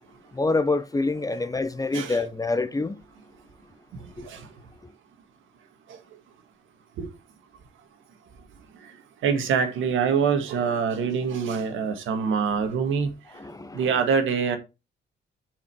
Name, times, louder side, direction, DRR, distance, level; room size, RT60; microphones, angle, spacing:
voice 1, 0.3-3.0 4.2-4.3 13.3-13.9, left 3 dB, 15° left, 0.8 m, -26 dB
voice 2, 9.2-13.1 13.7-14.6, right 6 dB, 80° right, 1.8 m, -25 dB
7.0 x 5.1 x 4.5 m
cardioid pair, 90°, 20 cm